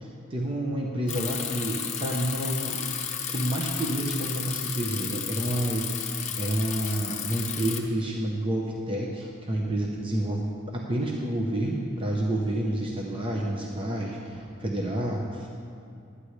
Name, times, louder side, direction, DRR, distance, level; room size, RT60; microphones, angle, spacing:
voice 1, 0.0-2.9 3.3-15.5, right 1 dB, 25° right, -1 dB, 0.9 m, -29 dB
Bicycle, 1.1-7.8, left 8 dB, 30° left, 0.9 m, -33 dB
19.5 x 9.9 x 3.3 m, 2.6 s
head